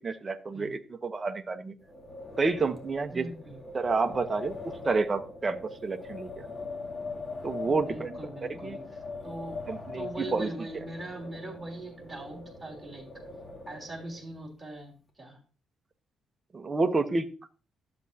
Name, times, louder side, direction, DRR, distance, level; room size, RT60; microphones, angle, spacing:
voice 1, 0.0-1.7 2.4-3.3 3.7-6.5 7.4-8.2 8.5-8.8 9.7-10.5 16.5-17.3, right 3 dB, 25° right, 6 dB, 0.9 m, -29 dB
Wind, 1.8-14.4, left 3 dB, 25° left, 2.2 m, -42 dB
voice 2, 3.1-3.6 7.6-9.6 9.9-13.1 13.7-15.4, right 2 dB, 5° right, -3 dB, 3.5 m, -41 dB
13.0 x 7.5 x 2.8 m, 0.34 s
cardioid pair, 140°, 0 cm